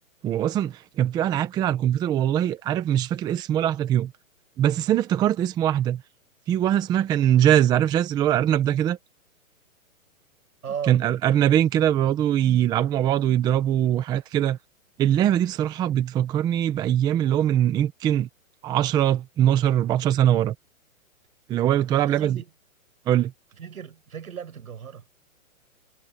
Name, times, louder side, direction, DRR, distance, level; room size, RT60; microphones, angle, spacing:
voice 1, 0.2-4.1 4.6-6.0 6.5-9.0 10.9-14.6 15.0-18.3 18.6-20.5 21.5-22.4 23.1-23.3, right 11 dB, 10° right, 0.8 m, -22 dB
voice 2, 10.6-11.0 21.9-22.5 23.6-25.0, right 7 dB, 85° right, 6.2 m, -36 dB
hypercardioid pair, 155°, 42 cm